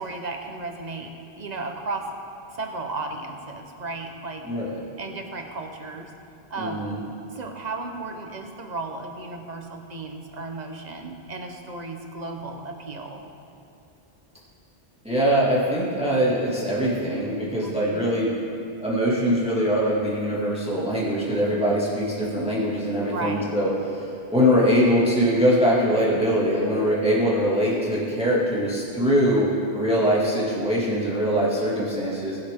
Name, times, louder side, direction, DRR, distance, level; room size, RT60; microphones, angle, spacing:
voice 1, 0.0-2.1 2.5-4.4 5.0-6.1 6.5-6.9 7.3-13.3 17.6-18.0 23.0-23.5, right 3 dB, 45° right, 3 dB, 1.1 m, -34 dB
voice 2, 4.4-4.8 6.6-7.0 15.0-18.4 18.8-23.7 24.0-32.4, equal, 5° right, -7 dB, 2.4 m, -22 dB
20.5 x 8.1 x 3.8 m, 2.6 s
omnidirectional pair, 1.0 m